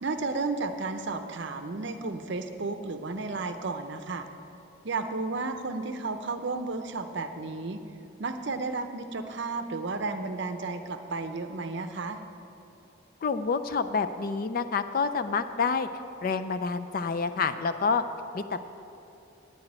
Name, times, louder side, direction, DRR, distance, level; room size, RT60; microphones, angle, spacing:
voice 1, 0.0-4.3 4.8-7.8 8.2-12.2, right 3 dB, 55° right, 8 dB, 0.6 m, -33 dB
voice 2, 13.2-15.9 16.2-18.0 18.3-18.6, left 5 dB, 45° left, 11 dB, 0.4 m, -28 dB
9.9 x 6.1 x 8.7 m, 2.8 s
head